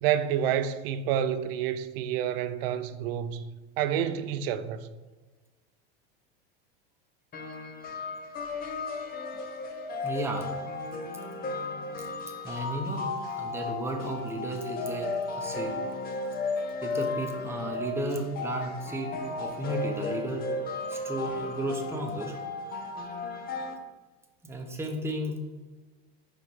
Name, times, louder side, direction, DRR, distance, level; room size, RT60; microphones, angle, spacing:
voice 1, 0.0-3.4 3.8-4.9, right 9 dB, 70° right, 0.6 m, -28 dB
sound 1, 7.3-23.7, left 3 dB, 30° left, 0.8 m, -34 dB
voice 2, 10.0-10.5 12.0-12.1 12.4-15.1 15.3-15.8 16.8-20.5 20.9-22.4 24.4-25.4, right 1 dB, 10° right, 0.8 m, -34 dB
4.8 x 4.1 x 5.4 m
supercardioid pair, 130°, 30 cm